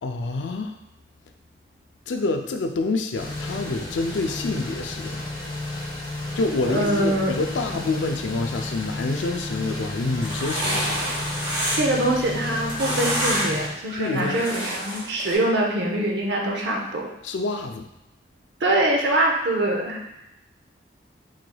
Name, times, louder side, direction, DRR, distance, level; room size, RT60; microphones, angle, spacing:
voice 1, 0.0-0.7 2.1-5.2 6.4-11.1 14.0-14.4 17.2-17.9, left 3 dB, 85° left, 6 dB, 0.4 m, -27 dB
sound 1, 3.1-13.7, left 2 dB, 25° left, 0.8 m, -32 dB
voice 2, 6.6-7.4 11.8-17.1 18.6-20.0, right 1 dB, 75° right, 0 dB, 0.7 m, -23 dB
sound 2, 10.0-12.0 12.4-13.6 13.9-15.3, right 1 dB, 30° right, 1.0 m, -28 dB
3.9 x 3.2 x 2.2 m, 0.89 s
head